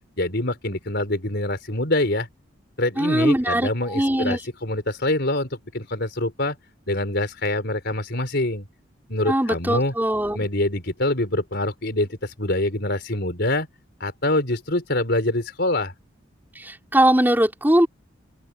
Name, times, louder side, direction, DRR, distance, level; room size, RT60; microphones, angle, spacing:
voice 1, 0.2-2.3 2.8-6.6 6.9-8.6 9.1-9.9 10.3-13.7 14.0-15.9, left 1 dB, 55° left, 4.6 m, -25 dB
voice 2, 3.0-4.4 9.3-10.4 16.5-17.9, right 1 dB, 10° right, 4.8 m, -21 dB
open air
head